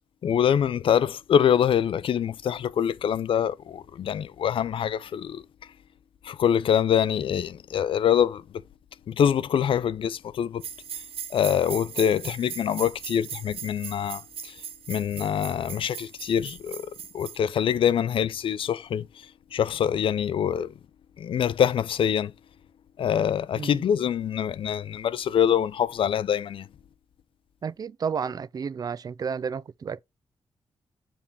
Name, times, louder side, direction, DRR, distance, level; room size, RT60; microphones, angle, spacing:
voice 1, 0.2-5.4 6.2-8.4 9.1-10.6 11.3-14.5 14.9-16.9 17.1-19.1 19.5-20.7 21.2-22.3 23.0-26.7, left 9 dB, 70° left, 0.5 m, -24 dB
sound 1, 10.6-17.4, right 8 dB, 85° right, 0.9 m, -39 dB
voice 2, 27.6-30.0, right 6 dB, 45° right, 0.4 m, -31 dB
7.1 x 3.6 x 4.1 m
wide cardioid pair, 120°, 9 cm